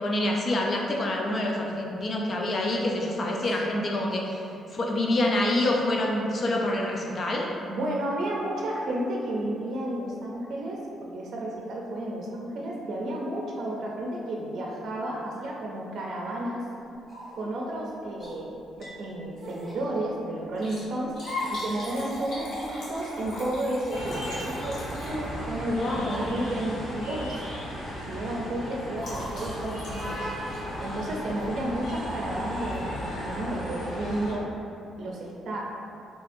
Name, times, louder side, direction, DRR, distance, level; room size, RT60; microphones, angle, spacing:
voice 1, 0.0-4.4 4.7-7.5 25.7-26.4, left 1 dB, 45° left, -1 dB, 0.5 m, -27 dB
voice 2, 7.7-16.6 17.4-21.1 21.5-27.4 28.1-30.3 30.8-34.5 35.0-35.6, right 1 dB, 65° right, -2 dB, 0.5 m, -32 dB
sound 1, 17.1-17.5 18.2-18.4 19.4-19.8 21.1-21.7 22.0-22.1 23.0-23.4 24.3-25.2 26.1-26.5, left 2 dB, 5° right, 1.4 m, -38 dB
Liquid, 18.6-19.1 19.4-19.5 20.4-25.6 26.5-26.8 27.2-27.4 27.7-31.8 32.7-33.0 33.5-33.6 33.8-33.9, equal, 60° left, 1.3 m, -41 dB
sound 2, 23.9-34.3, equal, 90° left, 1.3 m, -35 dB
4.0 x 2.7 x 2.6 m, 2.6 s
cardioid pair, 90°, 0 cm